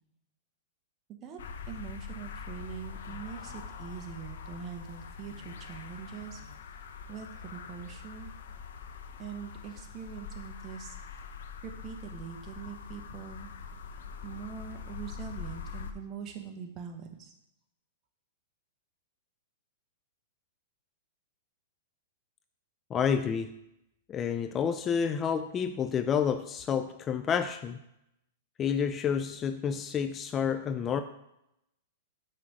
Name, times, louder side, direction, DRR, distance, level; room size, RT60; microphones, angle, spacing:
voice 1, 1.1-1.4 1.7-6.4 7.1-8.3 9.2-11.0 11.6-13.5 14.2-17.3, right 7 dB, 30° right, 4 dB, 1.1 m, -43 dB
sound 1, 1.4-15.9, left 6 dB, 75° left, 0.8 m, -44 dB
voice 2, 22.9-23.5 24.1-27.8 28.6-31.0, left 7 dB, 20° left, 10 dB, 0.3 m, -29 dB
6.0 x 5.0 x 6.2 m, 0.83 s
hypercardioid pair, 145°, 0 cm